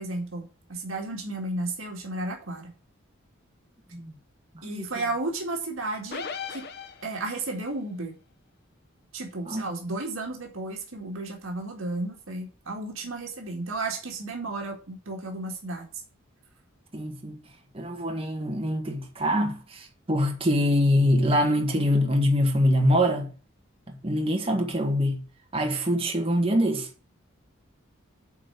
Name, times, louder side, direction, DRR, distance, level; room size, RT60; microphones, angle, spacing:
voice 1, 0.0-2.7 4.6-6.2 6.5-6.7 7.0-8.1 9.1-15.9, right 2 dB, 75° right, 2.0 m, -33 dB
sound 1, 6.1-7.5, left 6 dB, 50° left, 1.0 m, -37 dB
voice 2, 16.9-17.4 17.7-23.3 23.9-25.2 25.5-26.9, equal, 25° right, 1.7 m, -24 dB
8.6 x 4.4 x 6.8 m
head